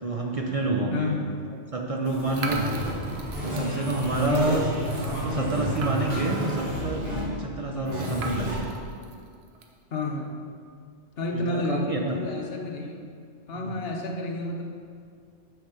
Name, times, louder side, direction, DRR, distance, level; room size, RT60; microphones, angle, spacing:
voice 1, 0.0-1.3 1.7-2.6 3.4-4.7 4.9-8.7 11.3-12.2 13.6-13.8, right 2 dB, 40° right, 0 dB, 0.6 m, -28 dB
voice 2, 0.9-1.4 4.3-4.7 9.9-10.3 11.2-13.1 13.5-14.6, left 2 dB, 55° left, 2 dB, 1.1 m, -30 dB
sound 1, 2.0-7.2 7.8-8.6, equal, 90° right, 2.8 m, -31 dB
sound 2, 2.3-6.3 6.7-6.8 7.0-7.1 8.0-9.7, right 4 dB, 65° right, 1.0 m, -39 dB
6.7 x 6.1 x 5.7 m, 2.2 s
omnidirectional pair, 1.2 m